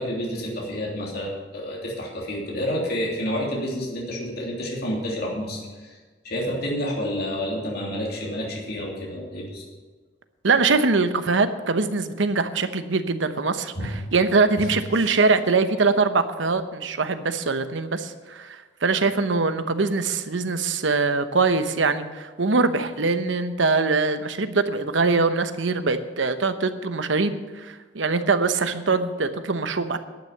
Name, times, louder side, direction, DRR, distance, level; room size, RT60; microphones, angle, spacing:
voice 1, 0.0-6.0 6.2-9.6 13.7-13.9 14.6-14.7 15.0-15.1, equal, 55° left, -3 dB, 3.1 m, -29 dB
voice 2, 10.4-30.0, right 4 dB, 85° right, 10 dB, 1.0 m, -23 dB
11.0 x 9.4 x 7.2 m, 1.4 s
head